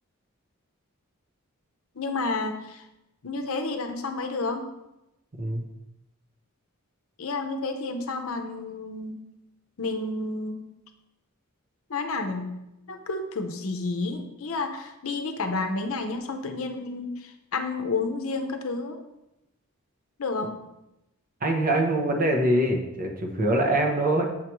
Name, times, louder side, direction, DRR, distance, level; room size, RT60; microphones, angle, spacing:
voice 1, 2.0-2.9 3.2-4.7 7.2-9.2 9.8-10.7 11.9-19.0 20.2-20.6, left 3 dB, 70° left, 5 dB, 0.7 m, -30 dB
voice 2, 21.4-24.3, right 1 dB, 40° right, 2 dB, 0.9 m, -24 dB
7.3 x 4.8 x 3.1 m, 0.92 s
head